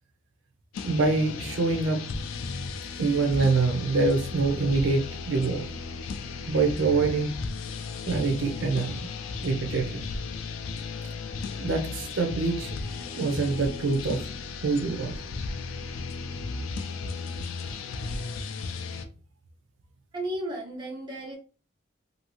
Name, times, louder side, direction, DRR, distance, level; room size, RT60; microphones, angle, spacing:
sound 1, 0.7-19.0, left 4 dB, 85° left, 0.4 m, -35 dB
voice 1, 0.8-2.0 3.0-5.7 6.5-7.4 8.1-9.1 9.4-10.0 11.6-12.7 13.1-14.2 14.6-15.2, right 3 dB, 70° right, 3 dB, 0.5 m, -25 dB
voice 2, 20.1-21.4, right 1 dB, 20° right, -3 dB, 0.7 m, -34 dB
2.6 x 2.6 x 2.9 m, 0.38 s
head